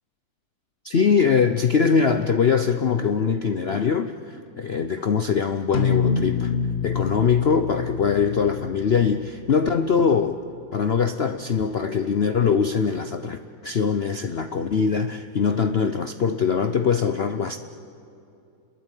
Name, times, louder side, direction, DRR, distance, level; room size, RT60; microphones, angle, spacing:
voice 1, 0.8-6.5 6.8-10.4 10.7-17.6, left 6 dB, 85° left, 9 dB, 0.5 m, -22 dB
sound 1, 5.7-10.3, left 6 dB, 40° left, 1.3 m, -27 dB
29.0 x 21.5 x 9.1 m, 2.7 s
omnidirectional pair, 2.1 m